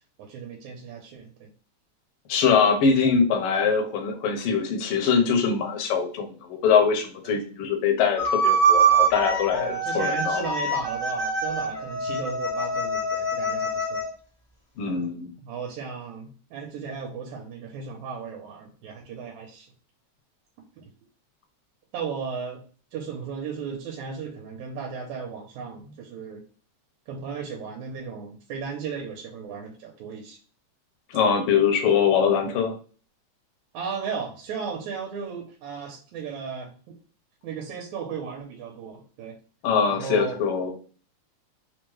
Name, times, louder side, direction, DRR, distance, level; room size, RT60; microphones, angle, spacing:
voice 1, 0.2-1.5 7.2-7.4 9.5-14.0 15.4-19.7 21.9-22.6 22.9-26.4 27.1-30.4 33.7-36.7 37.4-39.4 39.8-40.4, right 6 dB, 75° right, 0 dB, 2.1 m, -35 dB
voice 2, 2.3-10.4 14.8-15.3 31.1-32.7 39.6-40.7, left 6 dB, 70° left, 2 dB, 1.4 m, -23 dB
sound 1, 8.2-14.1, right 3 dB, 25° left, 0.4 m, -24 dB
5.0 x 2.2 x 3.1 m, 0.39 s
omnidirectional pair, 3.5 m